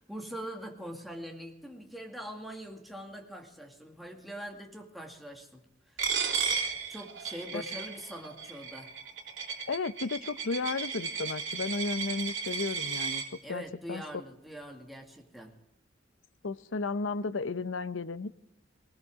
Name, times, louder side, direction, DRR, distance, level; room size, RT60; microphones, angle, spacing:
voice 1, 0.0-6.0 6.9-8.9 13.4-15.5, equal, ahead, 0 dB, 2.2 m, -43 dB
Coin (dropping), 6.0-13.2, right 5 dB, 75° right, 3.5 m, -34 dB
voice 2, 9.7-13.2 13.5-13.6 13.9-14.0 16.4-18.3, left 4 dB, 85° left, 14 dB, 0.7 m, -33 dB
20.0 x 19.5 x 3.7 m, 0.84 s
head